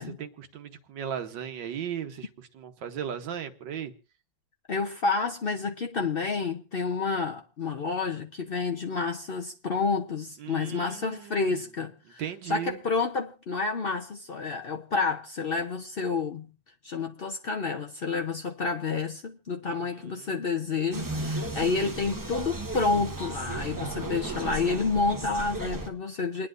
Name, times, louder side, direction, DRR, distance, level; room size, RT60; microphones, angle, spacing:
voice 1, 0.0-3.9 10.4-11.5 12.2-12.8 19.6-20.3, right 9 dB, 75° right, 1.6 m, -37 dB
voice 2, 4.7-12.2 12.5-16.5 16.8-26.5, left 4 dB, 85° left, 0.5 m, -29 dB
sound 1, 20.9-25.9, right 2 dB, 15° right, 0.7 m, -35 dB
28.5 x 9.9 x 2.5 m
omnidirectional pair, 2.0 m